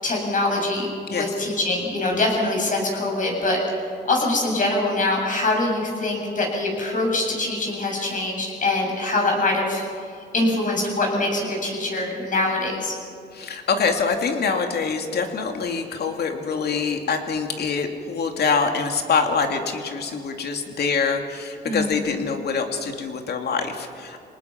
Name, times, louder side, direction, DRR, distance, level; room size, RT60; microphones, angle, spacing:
voice 1, 0.0-3.8 4.0-9.8 10.3-12.9 21.6-21.9, left 2 dB, 45° left, -1 dB, 7.7 m, -24 dB
voice 2, 13.3-24.2, left 5 dB, 65° left, 4 dB, 2.6 m, -25 dB
26.5 x 19.5 x 5.9 m, 2.5 s
cardioid pair, 100°, 18 cm